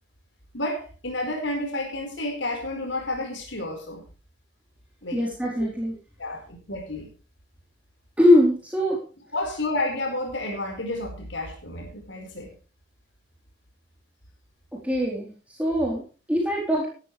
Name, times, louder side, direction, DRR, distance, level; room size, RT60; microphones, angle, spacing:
voice 1, 0.5-4.0 5.0-5.2 6.2-7.1 9.3-12.5, left 2 dB, 75° left, 2 dB, 4.8 m, -30 dB
voice 2, 5.1-5.9 8.2-9.0 14.7-16.9, left 1 dB, 5° right, -4 dB, 3.9 m, -22 dB
16.5 x 13.0 x 3.4 m, 0.37 s
head